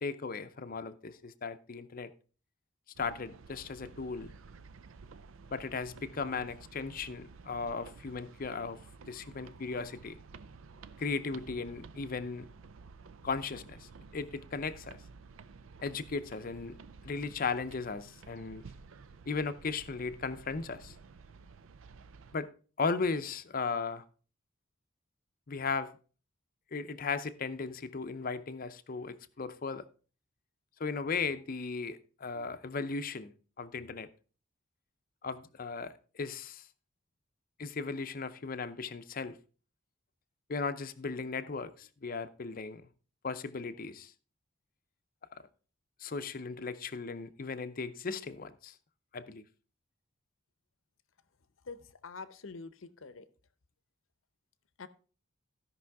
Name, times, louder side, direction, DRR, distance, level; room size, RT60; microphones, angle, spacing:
voice 1, 0.0-2.1 3.0-4.3 5.5-10.2 11.0-12.5 13.2-15.0 15.8-16.8 17.0-18.6 19.3-21.0 22.3-22.5 22.8-24.0 25.5-25.9 26.7-29.8 30.8-34.1 35.2-36.7 37.6-39.4 40.5-42.9 43.2-44.1 46.0-48.8 49.1-49.4, left 4 dB, 45° left, 0.6 m, -36 dB
sound 1, 2.9-22.4, right 4 dB, 80° right, 0.5 m, -53 dB
voice 2, 51.7-53.3 54.8-54.9, left 4 dB, 80° left, 0.7 m, -45 dB
15.5 x 5.5 x 3.5 m
head